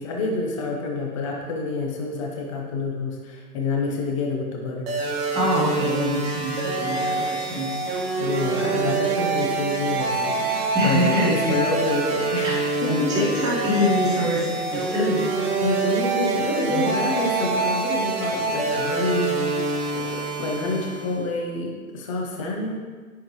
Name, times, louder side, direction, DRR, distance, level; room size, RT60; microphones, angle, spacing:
voice 1, 0.0-4.9 8.2-13.2 15.6-22.8, left 3 dB, 20° left, 0 dB, 0.6 m, -27 dB
sound 1, 4.9-21.3, right 3 dB, 40° right, 1.4 m, -26 dB
voice 2, 5.3-7.8 10.7-11.6 12.4-12.5 12.9-15.3 16.6-16.9, equal, 10° right, -6 dB, 0.8 m, -25 dB
10.0 x 4.6 x 3.0 m, 1.5 s
hypercardioid pair, 150°, 47 cm